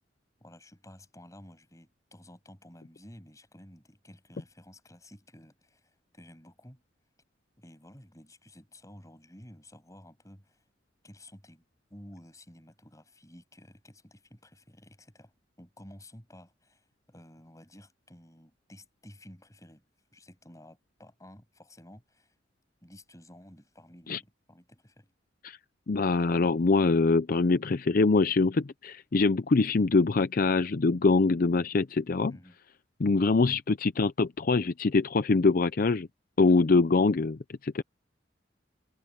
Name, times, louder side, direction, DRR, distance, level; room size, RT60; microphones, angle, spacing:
voice 1, 0.4-6.8 7.6-10.7 11.0-19.8 20.1-22.3 22.8-25.1 32.3-32.6, left 1 dB, 20° left, 7.3 m, -53 dB
voice 2, 25.9-32.3 33.0-36.1 36.4-37.8, left 3 dB, 50° left, 0.5 m, -24 dB
head